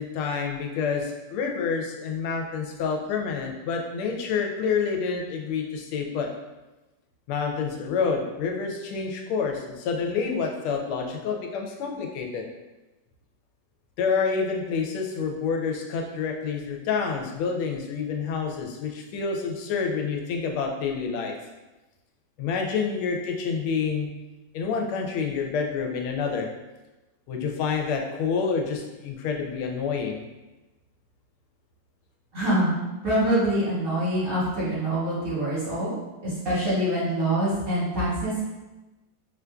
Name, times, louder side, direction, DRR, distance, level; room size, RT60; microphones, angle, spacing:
voice 1, 0.0-6.3 7.3-12.5 14.0-21.4 22.4-24.1 24.5-26.5 27.3-30.2, left 5 dB, 85° left, 2 dB, 1.4 m, -28 dB
voice 2, 32.3-32.7 33.0-35.9 36.2-38.4, right 1 dB, 45° right, -11 dB, 1.8 m, -25 dB
4.8 x 2.5 x 2.2 m, 1.1 s
omnidirectional pair, 2.3 m